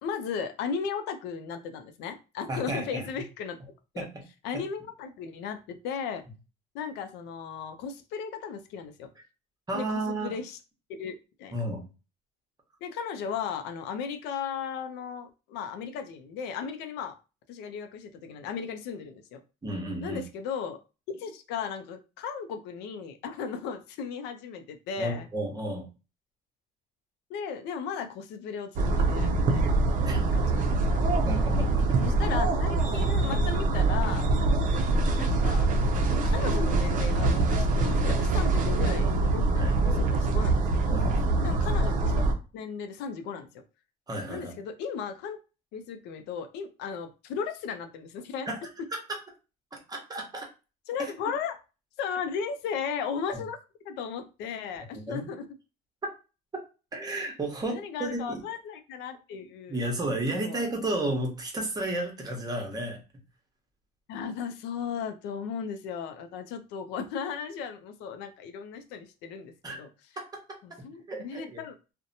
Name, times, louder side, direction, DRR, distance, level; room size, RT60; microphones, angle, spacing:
voice 1, 0.0-3.6 3.9-4.1 4.4-6.2 6.7-9.1 9.7-10.6 10.9-11.5 12.8-17.2 17.5-19.4 20.0-20.8 21.1-25.3 27.3-29.8 30.2-31.0 31.9-34.3 35.2-41.1 41.4-42.1 42.5-43.5 44.3-45.4 45.7-48.5 50.9-51.6 52.0-53.6 53.8-55.5 57.6-59.8 60.2-60.7 64.1-69.9 70.6-71.8, left 6 dB, 90° left, 7 dB, 0.4 m, -36 dB
voice 2, 2.5-3.1 4.0-4.1 9.7-10.4 11.5-11.9 19.6-20.2 25.0-25.9 30.0-30.3 31.2-32.0 39.5-39.8 40.9-41.5 44.1-44.5 48.5-48.6 48.9-49.2 49.9-50.5 51.0-51.1 53.3-53.4 54.9-55.3 56.0-56.1 56.5-56.6 56.9-58.4 59.7-63.0 69.6-69.8 70.2-70.6 71.1-71.6, right 1 dB, 25° right, 2 dB, 0.9 m, -33 dB
sound 1, 28.8-42.3, right 2 dB, 50° right, 0.5 m, -24 dB
2.7 x 2.1 x 2.6 m, 0.31 s
cardioid pair, 110°, 17 cm